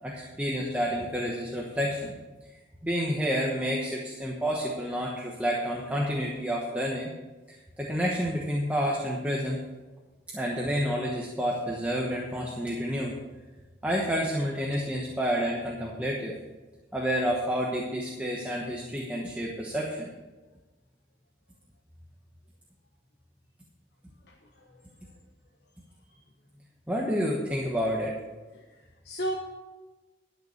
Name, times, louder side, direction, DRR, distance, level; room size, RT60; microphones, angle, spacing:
voice 1, 0.0-2.2 2.8-7.1 7.5-9.6 10.3-13.1 13.8-16.4 16.9-20.1 26.9-28.1, equal, 10° right, -2 dB, 1.1 m, -29 dB
voice 2, 24.3-24.7 25.0-25.1 28.5-28.6 29.0-29.3, right 1 dB, 75° left, 0 dB, 1.2 m, -34 dB
11.5 x 6.7 x 6.5 m, 1.2 s
head